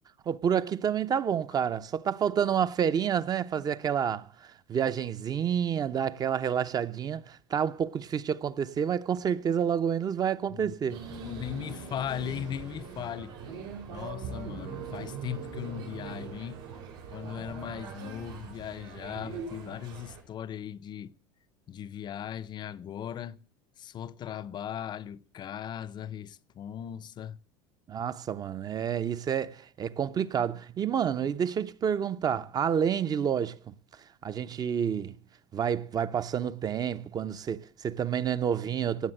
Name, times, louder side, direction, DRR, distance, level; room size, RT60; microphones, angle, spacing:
voice 1, 0.3-11.0 27.9-33.7 34.2-35.2 35.5-39.1, right 8 dB, 30° right, 0.8 m, -29 dB
voice 2, 10.5-13.3 13.9-16.7 17.1-21.1 21.7-23.4 23.8-27.4, left 10 dB, 35° left, 0.7 m, -38 dB
sound 1, 10.9-20.2, right 5 dB, 85° right, 6.6 m, -41 dB
17.5 x 7.8 x 7.8 m
supercardioid pair, 115°, 13 cm